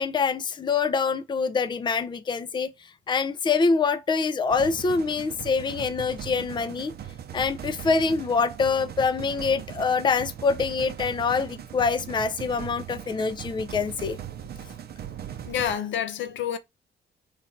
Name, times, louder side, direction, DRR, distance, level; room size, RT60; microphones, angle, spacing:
voice 1, 0.0-2.7 3.1-6.9 7.3-14.2, left 5 dB, 25° left, 0.4 m, -25 dB
sound 1, 4.5-15.7, right 10 dB, 50° right, 0.6 m, -39 dB
voice 2, 15.4-16.6, left 9 dB, 70° left, 0.6 m, -28 dB
3.2 x 2.5 x 4.3 m
cardioid pair, 90°, 20 cm